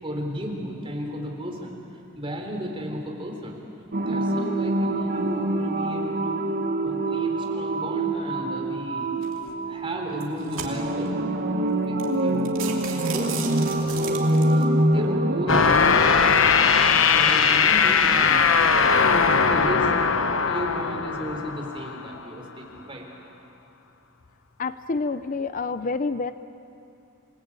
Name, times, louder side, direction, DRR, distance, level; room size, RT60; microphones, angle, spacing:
voice 1, 0.0-1.8 2.2-3.6 4.0-6.4 6.8-9.1 9.7-11.2 11.8-13.6 13.9-16.4 16.9-18.7 19.5-19.9 20.5-23.1, equal, 25° right, 1 dB, 3.8 m, -34 dB
sound 1, 3.9-15.6, right 1 dB, 50° right, 1.4 m, -25 dB
sound 2, 9.2-9.5 10.1-11.1 11.6-11.7 12.0-12.1 12.4-14.6, right 7 dB, 75° right, 2.9 m, -35 dB
sound 3, 15.5-22.1, left 5 dB, 75° left, 1.0 m, -20 dB
voice 2, 24.6-26.3, left 4 dB, 40° left, 12 dB, 0.5 m, -28 dB
28.5 x 19.0 x 8.7 m, 2.8 s
head